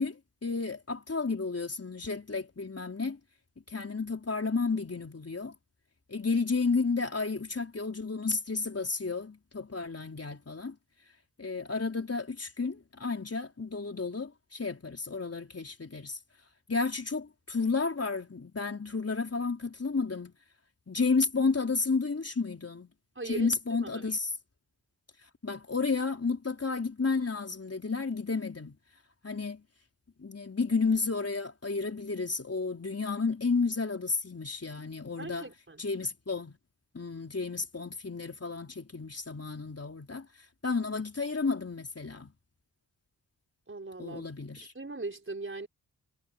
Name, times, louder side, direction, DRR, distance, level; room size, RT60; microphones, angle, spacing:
voice 1, 0.0-3.2 3.7-5.5 6.1-10.8 11.4-16.2 16.7-20.3 20.9-22.9 23.3-24.3 25.4-28.8 29.2-29.6 30.2-35.5 35.8-36.6 36.9-40.3 40.6-42.3 44.0-44.7, left 4 dB, 40° left, 4.1 m, -32 dB
voice 2, 23.2-23.5 23.8-24.0 35.2-35.8 43.7-44.3 44.6-45.7, right 3 dB, 30° right, 5.5 m, -40 dB
cardioid pair, 70°, 38 cm